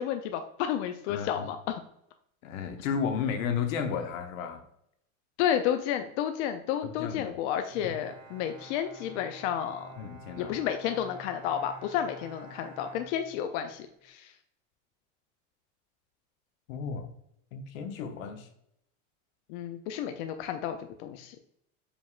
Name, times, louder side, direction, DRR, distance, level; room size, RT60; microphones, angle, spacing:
voice 1, 0.0-1.8 5.4-9.9 10.4-14.3 19.5-21.4, left 9 dB, 60° left, 7 dB, 0.5 m, -31 dB
voice 2, 1.1-1.5 2.4-4.6 6.8-7.4 7.8-8.0 10.0-10.5 16.7-17.1 17.5-18.5, left 6 dB, 85° left, 6 dB, 0.8 m, -33 dB
Bowed string instrument, 7.7-13.8, right 3 dB, 40° right, 1.7 m, -49 dB
5.1 x 3.5 x 2.4 m, 0.75 s
supercardioid pair, 150°, 39 cm